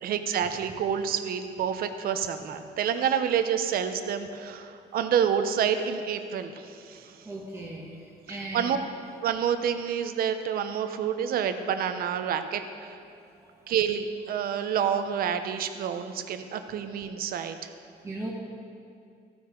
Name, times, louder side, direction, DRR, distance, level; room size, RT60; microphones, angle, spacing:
voice 1, 0.0-6.6 6.9-7.1 8.3-8.8 9.2-12.9 13.7-17.6, right 8 dB, 60° right, 9 dB, 0.8 m, -28 dB
voice 2, 7.3-7.8 8.3-8.8 16.6-16.7 18.0-18.3, right 1 dB, 15° right, -4 dB, 1.8 m, -36 dB
14.5 x 9.6 x 3.9 m, 2.5 s
cardioid pair, 110°, 17 cm